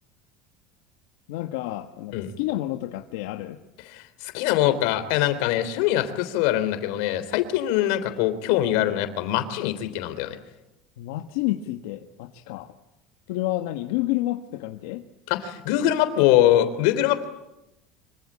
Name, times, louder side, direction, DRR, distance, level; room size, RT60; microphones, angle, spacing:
voice 1, 1.3-3.6 11.0-12.7 13.3-15.0, left 16 dB, 85° left, 6 dB, 1.4 m, -29 dB
voice 2, 3.8-10.4 15.3-17.2, left 13 dB, 65° left, 10 dB, 3.3 m, -23 dB
25.5 x 24.5 x 8.7 m, 0.91 s
cardioid pair, 180°, 0 cm